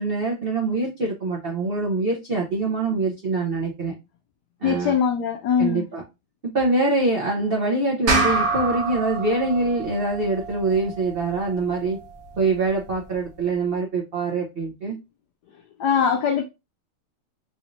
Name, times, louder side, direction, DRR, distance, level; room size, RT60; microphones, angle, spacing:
voice 1, 0.0-3.9 4.6-5.0 5.6-6.0 6.5-12.0 12.3-15.0, right 3 dB, 75° right, 0.5 m, -24 dB
voice 2, 4.6-5.9 15.8-16.4, left 7 dB, 75° left, 0.9 m, -21 dB
sound 1, 8.1-12.8, right 3 dB, 60° right, 0.9 m, -28 dB
3.9 x 3.1 x 2.5 m
omnidirectional pair, 2.3 m